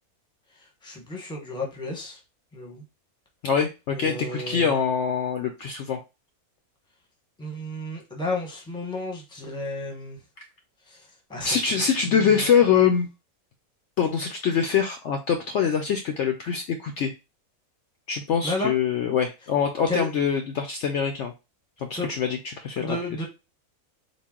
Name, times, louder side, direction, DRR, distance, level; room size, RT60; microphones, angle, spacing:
voice 1, 0.6-2.2 2.5-2.8 3.9-4.8 7.4-10.2 10.9-12.8 18.4-18.7 19.9-20.1 22.0-22.1 22.8-23.3, left 2 dB, 5° left, 0 dB, 0.7 m, -33 dB
voice 2, 3.4-6.0 11.4-13.1 14.0-17.1 18.1-21.3 21.8-23.0, left 7 dB, 65° left, 4 dB, 0.7 m, -24 dB
3.8 x 2.2 x 3.6 m, 0.26 s
omnidirectional pair, 1.5 m